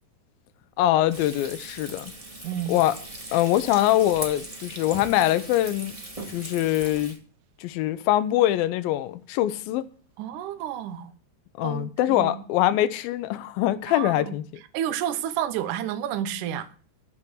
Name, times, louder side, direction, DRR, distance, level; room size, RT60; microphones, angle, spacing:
voice 1, 0.8-2.1 2.7-3.0 3.3-6.0 6.3-7.2 7.6-9.8 11.6-14.4, left 14 dB, 75° left, 2.4 m, -23 dB
Frying (food), 1.1-7.2, right 1 dB, 20° right, 0.9 m, -39 dB
voice 2, 10.2-11.1 11.6-12.4 13.9-14.3 14.7-16.7, right 10 dB, 70° right, 2.1 m, -30 dB
13.0 x 6.0 x 7.8 m
omnidirectional pair, 4.7 m